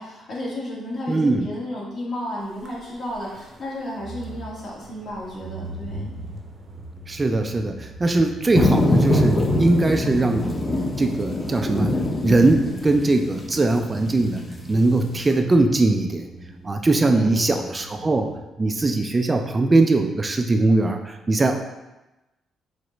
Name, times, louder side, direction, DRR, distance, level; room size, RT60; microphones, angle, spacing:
voice 1, 0.0-6.1 17.0-17.5, left 1 dB, 55° left, -5 dB, 1.4 m, -33 dB
voice 2, 1.1-1.5 7.1-10.5 11.0-11.9 12.2-14.4 14.7-16.3 16.6-18.3 18.6-21.6, right 2 dB, 25° right, 5 dB, 0.3 m, -20 dB
sound 1, 2.5-18.4, right 2 dB, 45° right, 0.7 m, -40 dB
sound 2, 8.5-15.2, left 1 dB, 25° left, 0.5 m, -23 dB
4.7 x 2.1 x 3.8 m, 1.0 s
cardioid pair, 90°, 0 cm